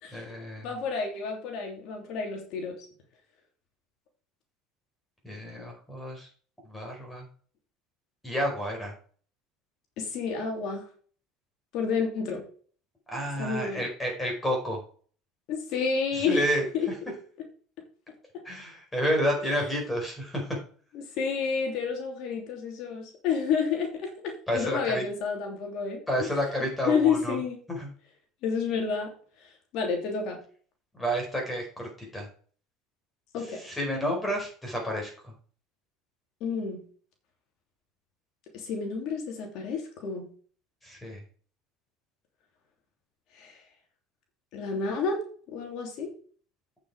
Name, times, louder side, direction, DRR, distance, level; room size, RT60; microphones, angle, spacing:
voice 1, 0.1-0.7 5.2-6.3 6.6-7.3 8.2-8.9 13.1-14.8 16.1-16.6 18.4-20.6 24.5-25.0 26.1-27.4 27.7-27.9 30.9-32.3 33.6-35.3 40.8-41.2, equal, 10° left, 1 dB, 4.9 m, -30 dB
voice 2, 0.6-2.9 10.0-10.9 11.7-12.4 13.4-13.9 15.5-16.9 19.4-19.6 20.9-26.3 26.8-27.6 28.4-29.1 29.4-30.4 33.3-33.6 36.4-36.8 38.5-40.3 43.3-43.6 44.5-45.2 45.5-46.1, left 5 dB, 60° left, 2 dB, 3.0 m, -30 dB
8.8 x 6.8 x 4.8 m, 0.43 s
supercardioid pair, 115°, 0 cm